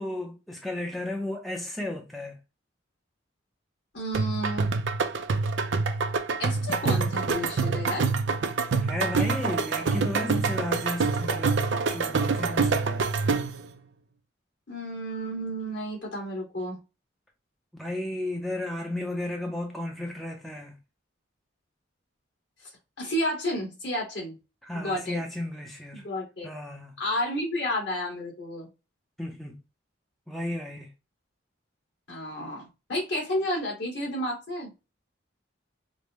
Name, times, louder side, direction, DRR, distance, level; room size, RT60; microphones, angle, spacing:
voice 1, 0.0-2.4 8.8-11.6 11.9-12.9 17.7-20.7 24.6-26.0 26.4-26.9 29.2-29.6 30.3-30.9, left 1 dB, ahead, 0.5 m, -34 dB
voice 2, 3.9-4.7 6.4-8.1 14.7-16.8 23.0-24.4 24.7-25.2 25.9-26.5 27.0-28.7 32.1-34.7, equal, 65° left, 2.3 m, -31 dB
sound 1, 4.1-13.7, right 4 dB, 70° right, 0.4 m, -26 dB
5.0 x 2.1 x 3.0 m
head